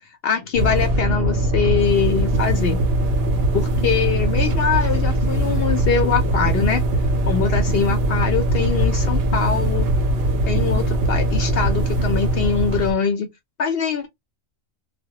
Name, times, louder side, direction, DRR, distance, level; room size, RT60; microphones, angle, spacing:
voice 1, 0.2-2.8 3.5-6.8 7.3-9.9 10.5-13.3 13.6-14.1, left 6 dB, 60° left, 0.6 m, -23 dB
sound 1, 0.5-12.9, right 1 dB, 60° right, 0.7 m, -21 dB
2.1 x 2.1 x 2.7 m
omnidirectional pair, 1.4 m